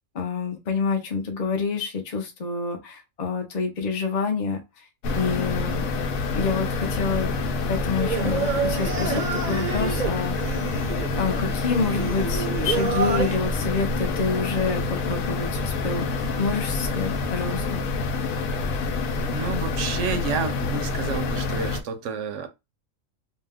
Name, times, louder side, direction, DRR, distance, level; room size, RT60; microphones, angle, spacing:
voice 1, 0.1-4.8 5.1-5.9 6.3-7.3 7.7-10.4 11.2-16.1 16.4-17.9, left 4 dB, 45° left, 0.5 m, -27 dB
sound 1, 5.0-21.8, left 3 dB, 80° left, 1.0 m, -27 dB
Singing, 8.0-13.4, right 6 dB, 50° right, 0.5 m, -29 dB
voice 2, 19.3-22.5, right 5 dB, 70° right, 0.9 m, -30 dB
2.7 x 2.2 x 3.4 m
omnidirectional pair, 1.4 m